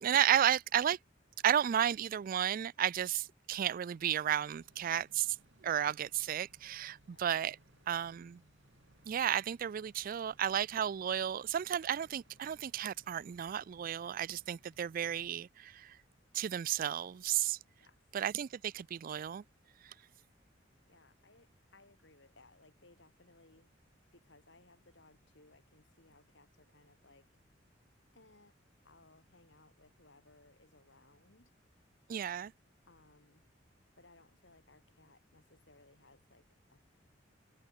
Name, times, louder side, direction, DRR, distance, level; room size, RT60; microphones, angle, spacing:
voice 1, 0.0-1.0 1.4-5.4 5.6-7.6 7.9-8.4 9.1-16.0 16.3-17.6 18.1-19.4 19.8-19.9 32.1-32.5, right 10 dB, 45° right, 0.3 m, -33 dB
sound 1, 4.5-15.3, right 1 dB, 70° right, 5.0 m, -67 dB
voice 2, 20.9-23.7 24.1-27.3 28.1-28.6 28.8-31.5 32.9-33.5 34.0-36.9, left 2 dB, 65° left, 7.0 m, -63 dB
head